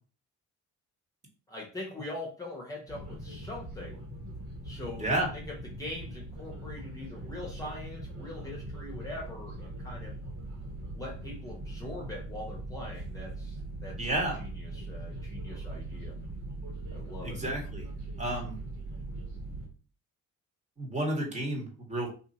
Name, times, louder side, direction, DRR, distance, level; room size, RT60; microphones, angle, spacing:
voice 1, 1.5-4.0 4.6-10.2 10.9-16.1 16.9-17.4, left 2 dB, 10° left, -3 dB, 1.0 m, -42 dB
sound 1, 2.9-19.7, right 2 dB, 70° right, 1.5 m, -41 dB
voice 2, 14.0-14.4 17.2-17.9 18.2-18.6 20.8-22.1, right 1 dB, 25° right, 0 dB, 1.5 m, -31 dB
2.7 x 2.7 x 4.1 m, 0.38 s
cardioid pair, 90°, 30 cm